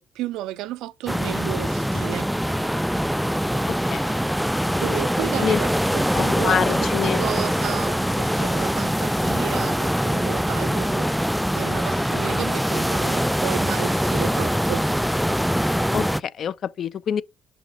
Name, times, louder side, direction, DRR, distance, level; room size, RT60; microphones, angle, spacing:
voice 1, 0.0-2.5 4.8-11.1 11.5-14.8, right 14 dB, 80° right, 0.5 m, -33 dB
sound 1, 1.1-16.2, equal, ahead, 0.3 m, -23 dB
voice 2, 3.7-4.2 5.4-5.6 6.1-7.2 15.9-17.2, left 8 dB, 60° left, 0.5 m, -26 dB
6.7 x 5.7 x 4.0 m
supercardioid pair, 75°, 0 cm